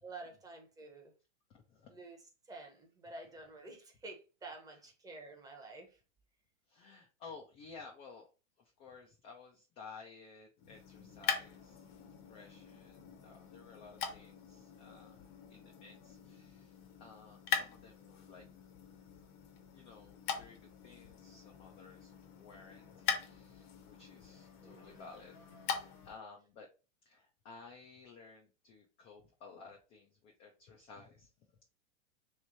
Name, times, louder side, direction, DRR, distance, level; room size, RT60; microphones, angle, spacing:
voice 1, 0.0-1.1 1.9-2.2 2.5-6.0 24.6-25.1, right 3 dB, 10° right, 0.8 m, -50 dB
voice 2, 1.5-1.9 6.7-8.3 8.6-11.9 12.3-15.2 15.5-18.5 19.7-25.3 25.7-26.7 27.0-31.6, left 4 dB, 20° left, 0.3 m, -55 dB
sound 1, 10.6-26.2, left 7 dB, 40° left, 0.8 m, -43 dB
3.1 x 3.1 x 3.9 m
supercardioid pair, 145°, 37 cm